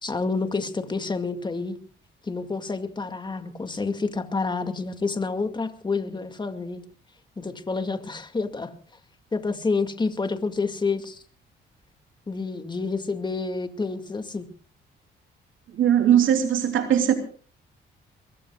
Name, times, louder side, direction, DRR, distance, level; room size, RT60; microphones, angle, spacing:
voice 1, 0.0-1.8 2.2-6.8 7.4-8.7 9.3-11.2 12.3-14.5, left 4 dB, 20° left, 8 dB, 2.1 m, -28 dB
voice 2, 15.7-17.1, right 9 dB, 75° right, 5 dB, 3.1 m, -19 dB
23.5 x 21.5 x 2.4 m, 0.41 s
cardioid pair, 90°, 20 cm